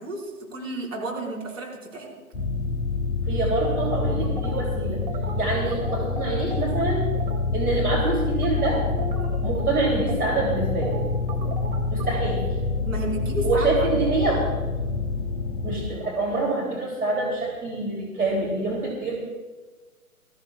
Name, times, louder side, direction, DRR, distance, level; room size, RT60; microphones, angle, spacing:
voice 1, 0.0-2.1 12.8-14.0, right 2 dB, 60° right, -2 dB, 4.8 m, -32 dB
sound 1, 2.3-15.9, left 4 dB, 10° left, 0.8 m, -27 dB
voice 2, 3.3-5.0 5.4-7.2 7.5-9.1 9.4-10.9 11.9-12.5 13.4-14.5 15.6-19.2, right 3 dB, 90° right, -2 dB, 3.1 m, -26 dB
sound 2, 3.6-6.8 7.1-7.4 7.7-12.5, right 4 dB, 30° right, 2.2 m, -37 dB
20.0 x 14.5 x 2.3 m, 1.3 s
figure-of-eight pair, 135°, 44 cm